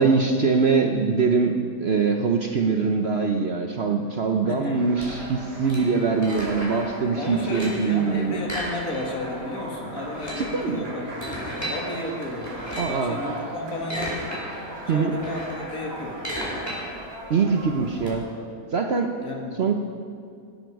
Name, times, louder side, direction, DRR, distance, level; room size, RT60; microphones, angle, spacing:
voice 1, 0.0-8.4 10.4-10.9 12.8-13.2 14.9-15.1 17.3-18.3 18.7-19.1 19.6-19.7, right 4 dB, 50° right, 4 dB, 0.8 m, -23 dB
voice 2, 4.5-4.8 7.2-14.4 14.9-16.2 19.2-19.5, left 1 dB, 60° left, 0 dB, 2.4 m, -33 dB
sound 1, 4.7-18.4, right 1 dB, 80° right, 3.2 m, -38 dB
sound 2, 5.0-6.9 7.2-7.9 8.4-9.3 9.6-9.7 10.0-11.8 12.4-13.0 13.6-14.4 14.8-18.1, equal, 10° left, 4.1 m, -34 dB
17.0 x 12.0 x 4.7 m, 2.4 s
omnidirectional pair, 1.7 m